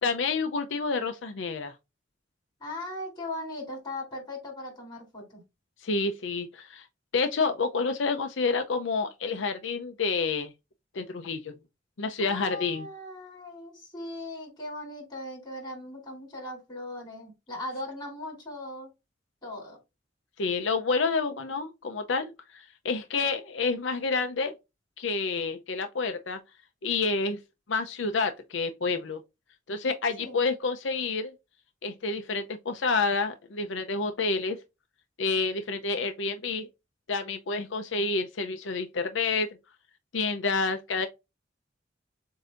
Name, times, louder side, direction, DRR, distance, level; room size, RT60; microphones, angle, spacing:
voice 1, 0.0-1.7 5.8-6.8 7.1-10.5 10.9-11.5 12.0-12.9 20.4-24.5 25.0-26.4 26.8-27.4 27.7-29.2 29.7-31.3 31.8-34.6 35.2-36.7 37.1-39.6 40.1-41.1, left 4 dB, 85° left, 0.6 m, -29 dB
voice 2, 2.6-5.4 12.2-18.9 19.4-19.8 30.2-30.5, left 1 dB, 25° left, 3.4 m, -39 dB
7.6 x 2.8 x 2.5 m
head